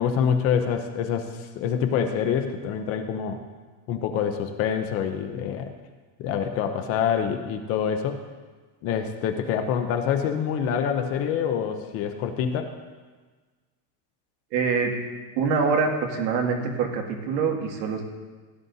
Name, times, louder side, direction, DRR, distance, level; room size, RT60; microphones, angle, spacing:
voice 1, 0.0-3.4 3.9-5.7 6.2-8.2 8.8-12.7, left 7 dB, 30° left, 7 dB, 0.5 m, -26 dB
voice 2, 14.5-14.9 15.4-18.0, right 5 dB, 85° right, 1 dB, 2.2 m, -24 dB
16.5 x 10.5 x 2.7 m, 1.4 s
cardioid pair, 175°, 49 cm